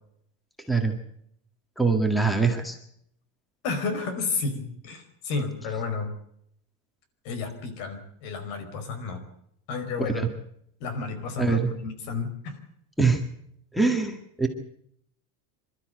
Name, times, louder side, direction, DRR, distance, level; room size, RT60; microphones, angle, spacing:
voice 1, 1.8-2.8 10.0-10.3 11.4-11.7 13.0-13.2 13.7-14.5, right 4 dB, ahead, 7 dB, 1.9 m, -23 dB
voice 2, 3.6-6.1 7.2-9.2 9.7-10.3 10.8-12.5, left 4 dB, 65° left, 10 dB, 5.2 m, -31 dB
27.5 x 13.0 x 8.0 m, 0.71 s
cardioid pair, 155°, 46 cm